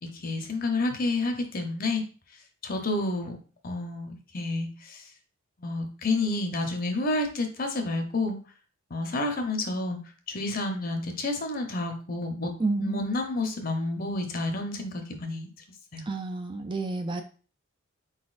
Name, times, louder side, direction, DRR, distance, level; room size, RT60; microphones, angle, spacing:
voice 1, 0.0-2.0 2.6-3.4 3.6-5.0 5.6-8.4 8.9-10.0 10.3-12.5 12.8-15.5 15.9-16.0, left 2 dB, 45° left, 4 dB, 0.8 m, -30 dB
voice 2, 12.6-13.0 16.1-17.2, right 3 dB, 25° right, 6 dB, 0.4 m, -30 dB
4.6 x 4.0 x 2.5 m, 0.38 s
head